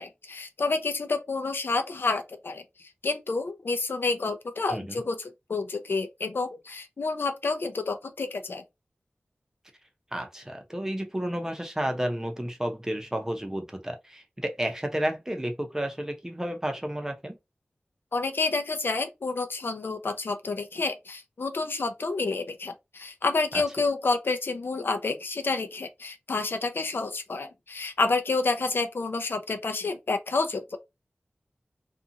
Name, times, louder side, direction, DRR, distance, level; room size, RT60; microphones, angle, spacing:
voice 1, 0.0-5.2 5.5-8.6 18.1-30.8, left 3 dB, 75° left, 0.5 m, -29 dB
voice 2, 4.7-5.0 10.1-17.4 23.5-23.6, right 1 dB, 15° right, 0.7 m, -31 dB
2.6 x 2.3 x 2.7 m
wide cardioid pair, 75°, 4 cm